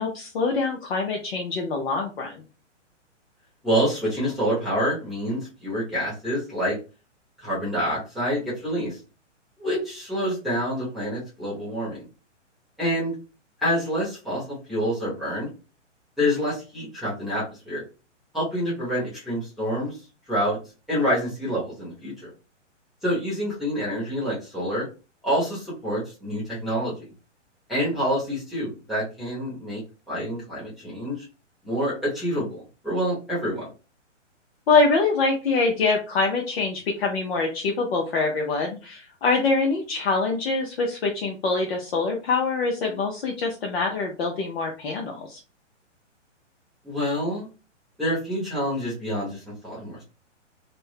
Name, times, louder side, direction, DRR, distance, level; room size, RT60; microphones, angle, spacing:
voice 1, 0.0-2.3 34.7-45.4, left 4 dB, 55° left, 1 dB, 0.7 m, -24 dB
voice 2, 3.6-6.8 7.4-9.0 9.6-12.0 12.8-13.1 13.6-14.4 14.7-15.5 16.2-17.8 18.3-19.9 20.3-20.6 20.9-22.3 23.0-24.9 25.2-26.9 27.7-29.8 30.1-31.3 31.6-33.7 46.8-47.5 48.0-50.0, equal, ahead, -8 dB, 0.9 m, -27 dB
2.6 x 2.1 x 3.4 m, 0.33 s
hypercardioid pair, 135°, 37 cm